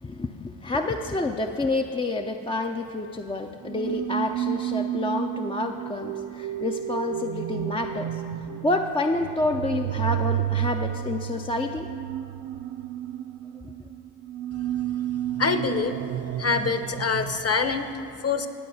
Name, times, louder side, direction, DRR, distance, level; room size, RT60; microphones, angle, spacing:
voice 1, 0.0-11.9, left 2 dB, 10° left, 3 dB, 0.4 m, -28 dB
sound 1, 3.6-17.4, right 12 dB, 65° right, 0.6 m, -31 dB
voice 2, 14.5-16.0 16.4-18.5, left 4 dB, 30° left, 8 dB, 0.8 m, -26 dB
17.5 x 8.2 x 2.7 m, 2.5 s
hypercardioid pair, 45°, 49 cm